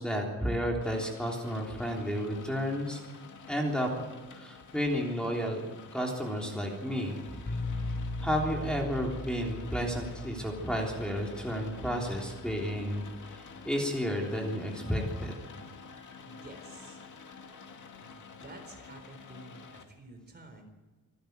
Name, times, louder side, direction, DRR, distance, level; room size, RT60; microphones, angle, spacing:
voice 1, 0.0-3.0 3.5-3.9 4.3-5.6 5.9-7.2 8.2-15.3, equal, 5° left, -1 dB, 3.4 m, -32 dB
Rain, 0.8-19.8, left 5 dB, 65° left, 2.3 m, -49 dB
sound 1, 7.5-13.2, left 2 dB, 35° left, 3.8 m, -39 dB
voice 2, 16.2-17.0 18.0-20.6, right 2 dB, 30° right, 5 dB, 3.8 m, -51 dB
26.5 x 12.0 x 9.5 m, 1.2 s
wide cardioid pair, 165°, 33 cm